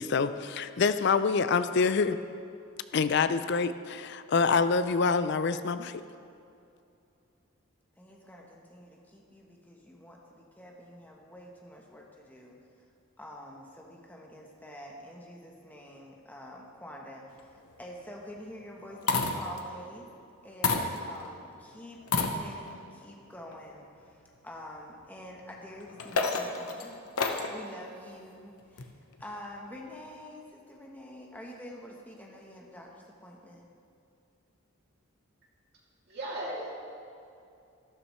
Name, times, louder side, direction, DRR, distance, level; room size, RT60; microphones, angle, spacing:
voice 1, 0.0-2.2 2.9-6.0, left 5 dB, 50° left, 12 dB, 0.4 m, -26 dB
voice 2, 8.0-12.6 13.2-20.1 20.4-27.0 27.5-28.9 29.2-33.6, left 1 dB, 10° left, -1 dB, 1.0 m, -47 dB
sound 1, 17.4-17.7 18.8-19.6 20.6-21.4 22.0-22.8 23.5-23.6 25.7-27.6 28.8-29.3, left 3 dB, 90° left, 0.9 m, -30 dB
voice 3, 36.1-36.8, right 1 dB, 50° right, -5 dB, 2.6 m, -36 dB
12.5 x 12.5 x 3.2 m, 2.6 s
head